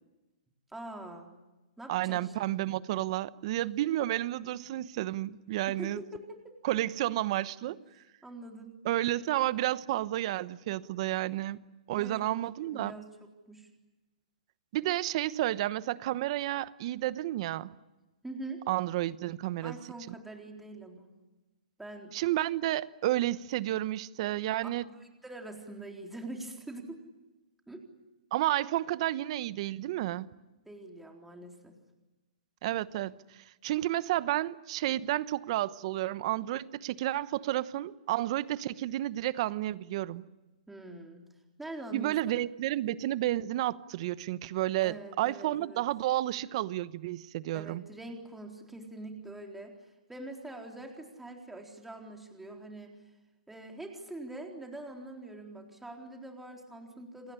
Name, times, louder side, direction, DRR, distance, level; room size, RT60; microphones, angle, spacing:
voice 1, 0.7-1.3 1.8-2.3 2.6-2.7 5.7-6.6 8.2-8.8 12.0-12.2 12.6-13.1 13.5-13.7 18.2-18.6 19.6-21.1 21.8-22.1 24.9-27.0 27.7-27.9 30.7-31.7 40.7-41.2 41.6-42.2 44.8-45.8 47.5-53.0 53.5-57.3, right 2 dB, 5° right, 1 dB, 4.0 m, -44 dB
voice 2, 1.9-6.0 6.6-7.8 8.8-11.6 11.9-12.9 14.7-17.7 18.7-19.7 20.1-20.2 22.1-24.9 28.3-30.3 32.6-33.2 33.6-40.2 41.9-47.8, right 15 dB, 45° right, 16 dB, 1.0 m, -31 dB
28.5 x 20.5 x 9.9 m, 1.1 s
hypercardioid pair, 140°, 4 cm